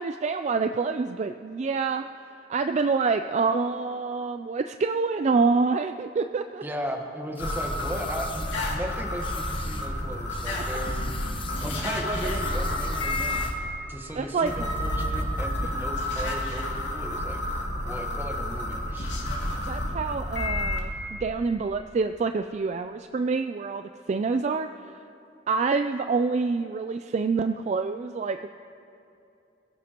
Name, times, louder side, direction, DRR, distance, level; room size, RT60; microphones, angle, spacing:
voice 1, 0.0-2.1 2.5-6.6 14.1-14.7 19.6-25.0 25.5-28.5, right 4 dB, 40° right, 8 dB, 0.3 m, -27 dB
voice 2, 6.6-11.0 11.6-13.4 13.9-17.4 17.8-19.1, equal, 10° right, 2 dB, 1.3 m, -36 dB
sound 1, 7.3-8.8 9.2-9.9 10.3-13.7, left 6 dB, 30° left, 0.8 m, -43 dB
sound 2, 7.4-13.5 14.5-20.8, left 1 dB, 75° left, 2.5 m, -30 dB
23.0 x 16.0 x 3.0 m, 2.7 s
head